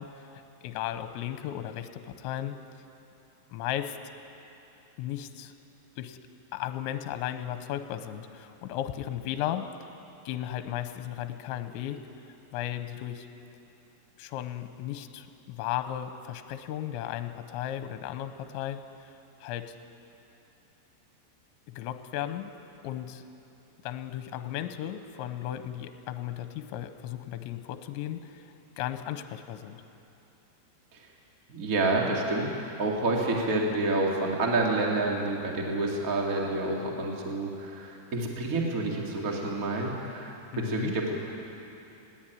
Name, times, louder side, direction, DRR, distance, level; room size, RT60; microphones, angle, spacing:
voice 1, 0.0-2.6 3.5-4.0 5.0-5.5 6.0-6.2 6.5-9.9 10.3-12.1 12.5-13.3 14.2-19.1 19.4-19.8 21.7-22.6 22.8-23.3 23.8-28.5 28.8-29.8 40.5-40.9, left 11 dB, 80° left, 9 dB, 3.0 m, -35 dB
voice 2, 31.5-32.5 32.8-41.1, right 2 dB, 45° right, -1 dB, 1.0 m, -28 dB
20.5 x 18.0 x 9.1 m, 2.9 s
omnidirectional pair, 5.5 m